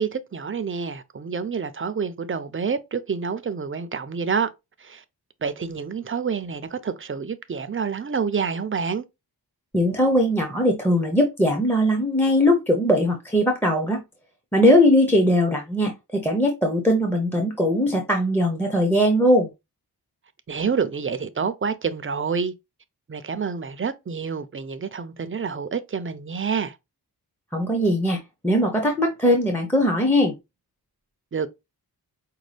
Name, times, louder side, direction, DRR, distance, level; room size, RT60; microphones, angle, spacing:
voice 1, 0.0-4.5 4.8-5.0 5.4-9.0 20.5-22.5 23.1-26.8 31.3-31.5, right 6 dB, 35° right, 0.5 m, -28 dB
voice 2, 9.7-14.0 14.5-19.5 27.5-28.2 28.4-30.3, equal, 5° left, 0.7 m, -20 dB
5.3 x 2.2 x 3.3 m
wide cardioid pair, 110°, 39 cm